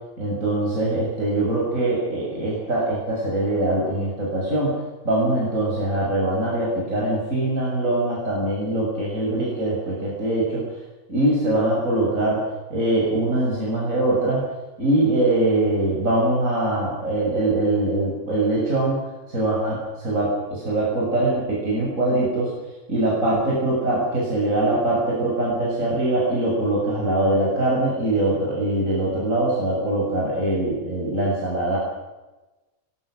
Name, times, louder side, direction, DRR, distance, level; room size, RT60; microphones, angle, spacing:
voice 1, 0.2-4.8 5.0-10.8 11.1-12.4 12.7-14.4 14.8-19.0 19.3-22.5 22.9-31.8, right 1 dB, 65° right, -5 dB, 7.4 m, -22 dB
29.5 x 20.5 x 6.5 m, 1.1 s
omnidirectional pair, 1.5 m